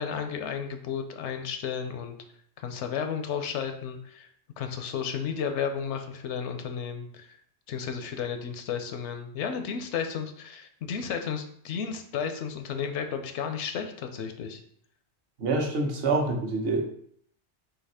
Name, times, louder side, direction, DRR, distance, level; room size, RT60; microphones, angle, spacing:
voice 1, 0.0-2.2 2.6-4.3 4.6-7.4 7.7-14.6, left 7 dB, 85° left, 7 dB, 0.9 m, -33 dB
voice 2, 15.4-16.8, right 3 dB, 60° right, 2 dB, 0.9 m, -26 dB
4.0 x 2.8 x 4.1 m, 0.65 s
omnidirectional pair, 1.2 m